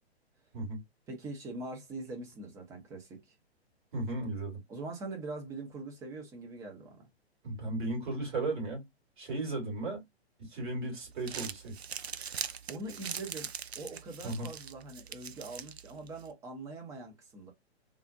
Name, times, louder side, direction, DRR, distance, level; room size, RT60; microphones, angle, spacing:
voice 1, 1.1-3.3 4.7-7.1 12.7-13.5 13.8-17.5, right 2 dB, 10° right, 0.6 m, -43 dB
voice 2, 3.9-4.6 7.4-8.9 9.2-10.0 10.4-11.7 14.2-14.5, right 2 dB, 50° right, 2.3 m, -35 dB
Crumpling crinkling, 11.0-16.3, right 7 dB, 75° right, 0.5 m, -42 dB
3.6 x 2.4 x 2.5 m
figure-of-eight pair, 120°, 33 cm